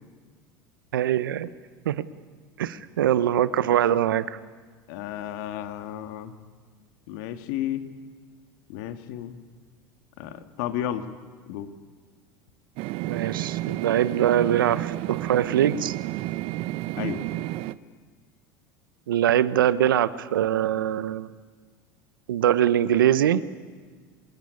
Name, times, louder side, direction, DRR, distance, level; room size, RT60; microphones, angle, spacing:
voice 1, 0.9-1.5 1.9-2.1 2.6-4.4 13.1-15.9 19.1-21.3 22.3-23.4, right 11 dB, 85° right, 16 dB, 1.0 m, -23 dB
voice 2, 4.9-6.3 7.1-7.8 8.7-9.3 10.2-11.1 11.5-11.7 17.0-17.2, left 11 dB, 65° left, 9 dB, 2.0 m, -32 dB
sound 1, 12.8-17.7, right 16 dB, 60° right, 0.8 m, -31 dB
26.0 x 20.0 x 9.8 m, 1.5 s
hypercardioid pair, 85°, 11 cm